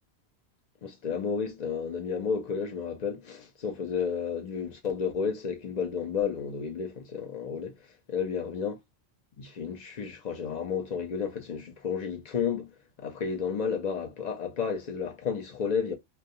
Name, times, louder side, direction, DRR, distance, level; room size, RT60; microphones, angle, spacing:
voice 1, 0.8-7.7 8.1-8.7 9.4-12.7 13.0-15.9, left 6 dB, 50° left, 0.6 m, -32 dB
2.2 x 2.2 x 2.7 m
omnidirectional pair, 1.2 m